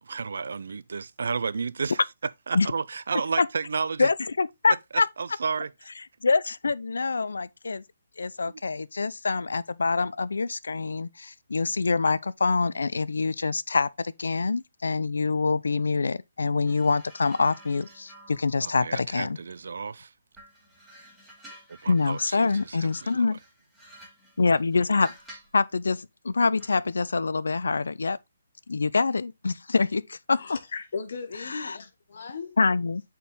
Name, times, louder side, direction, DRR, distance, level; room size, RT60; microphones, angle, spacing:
voice 1, 0.0-2.0 2.5-4.1 4.9-5.7 8.5-8.6 18.6-20.1 21.7-23.3, right 5 dB, 70° right, 0.4 m, -32 dB
voice 2, 4.0-5.1 6.2-7.8 8.2-19.4 21.9-23.4 24.4-25.1 25.5-28.2 28.7-30.4 31.4-31.8 32.6-33.0, left 4 dB, 80° left, 0.5 m, -25 dB
sound 1, 16.7-19.9 20.3-25.6 26.6-26.8, right 1 dB, 5° right, 2.4 m, -52 dB
voice 3, 30.3-32.6, left 5 dB, 60° left, 1.7 m, -37 dB
8.2 x 4.4 x 3.5 m
hypercardioid pair, 155°, 0 cm